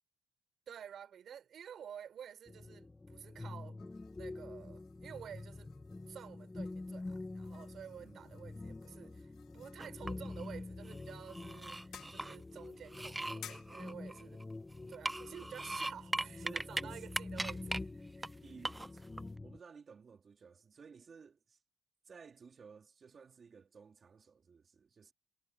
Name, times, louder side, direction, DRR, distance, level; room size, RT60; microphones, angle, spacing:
voice 1, 0.7-3.8 4.1-5.7 6.1-14.4 14.9-18.4, right 8 dB, 55° right, 5.1 m, -51 dB
sound 1, 2.5-19.6, left 2 dB, 15° left, 1.0 m, -47 dB
sound 2, 3.8-16.8, left 10 dB, 80° left, 1.3 m, -60 dB
voice 2, 8.0-8.4 16.4-17.0 18.4-19.0 19.4-21.6 22.1-25.1, right 5 dB, 35° right, 3.2 m, -56 dB
sound 3, 9.8-10.5 10.9-12.4 12.9-14.5 14.9-16.8 17.1-17.8 18.2-18.3 18.6-19.2, right 2 dB, 10° right, 0.4 m, -39 dB
cardioid pair, 145°, 0 cm